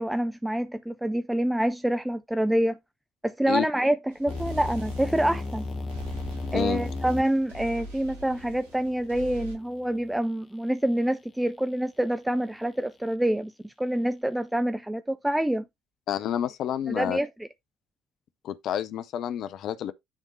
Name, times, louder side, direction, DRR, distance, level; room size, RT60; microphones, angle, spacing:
voice 1, 0.0-2.8 3.2-5.7 6.5-15.6 16.9-17.5, right 1 dB, 5° right, 0.5 m, -27 dB
sound 1, 4.1-9.5, right 1 dB, 80° right, 1.4 m, -43 dB
sound 2, 4.3-10.2, left 3 dB, 30° left, 1.1 m, -36 dB
voice 2, 16.1-17.2 18.4-19.9, left 10 dB, 55° left, 0.6 m, -29 dB
9.8 x 3.6 x 3.8 m
figure-of-eight pair, 50°, 0 cm